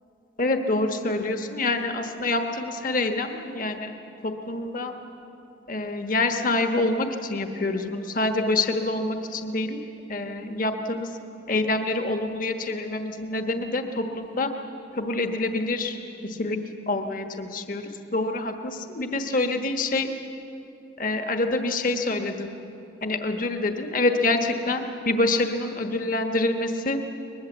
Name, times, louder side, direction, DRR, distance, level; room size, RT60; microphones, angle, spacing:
voice 1, 0.4-3.9 4.2-4.9 5.7-9.8 10.1-11.1 11.5-14.5 14.9-16.6 16.9-20.1 21.0-22.5 23.0-27.0, left 2 dB, 45° left, 5 dB, 1.3 m, -26 dB
22.5 x 21.0 x 8.1 m, 2.9 s
head